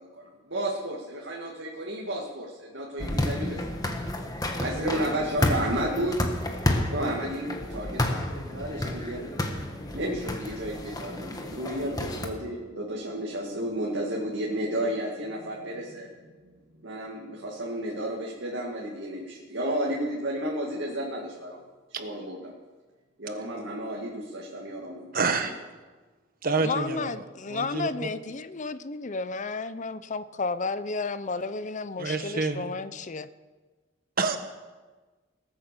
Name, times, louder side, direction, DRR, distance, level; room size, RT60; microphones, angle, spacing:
voice 1, 0.0-3.6 4.6-6.2 6.9-9.2 9.9-16.1 16.8-21.6 21.9-22.5 23.2-25.0 25.4-25.5, right 1 dB, 70° right, -3 dB, 2.3 m, -32 dB
sound 1, 3.0-12.3, left 1 dB, 20° left, 1.5 m, -30 dB
sound 2, 10.9-17.7, right 1 dB, 85° right, 3.9 m, -46 dB
voice 2, 25.1-25.6 26.4-27.1 27.5-28.1 32.0-32.6 34.2-34.4, right 4 dB, 50° right, 8 dB, 1.3 m, -27 dB
voice 3, 26.6-33.3, left 3 dB, 40° left, 14 dB, 0.7 m, -32 dB
20.5 x 8.8 x 6.8 m, 1.3 s
head